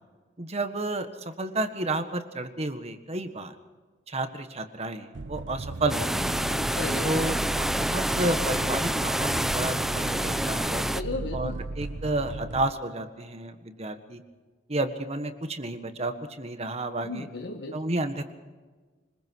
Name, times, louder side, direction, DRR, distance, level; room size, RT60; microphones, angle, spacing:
voice 1, 0.4-3.5 4.1-6.5 7.0-10.8 11.3-14.2 14.7-17.3 17.7-18.3, right 2 dB, 35° right, 8 dB, 1.5 m, -31 dB
sound 1, 5.1-12.7, right 2 dB, 90° right, 0.7 m, -36 dB
sound 2, 5.9-11.0, equal, ahead, 0.7 m, -27 dB
voice 2, 6.8-7.2 11.0-11.6 17.0-17.8, left 2 dB, 65° left, 3 dB, 1.5 m, -35 dB
27.0 x 21.0 x 4.7 m, 1.3 s
head